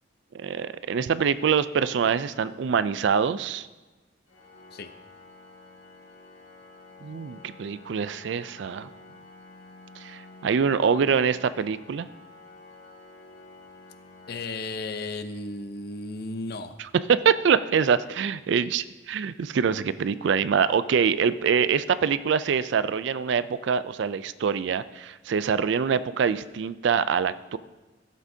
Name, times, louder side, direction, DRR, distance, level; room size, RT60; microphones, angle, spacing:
voice 1, 0.3-3.7 7.0-8.9 10.0-12.1 17.1-27.6, right 6 dB, 65° right, 14 dB, 0.3 m, -24 dB
Organ, 4.3-15.2, left 2 dB, 80° left, 1.7 m, -50 dB
voice 2, 14.3-16.8, left 3 dB, 50° left, 9 dB, 0.6 m, -34 dB
15.0 x 7.3 x 2.7 m, 1.2 s
head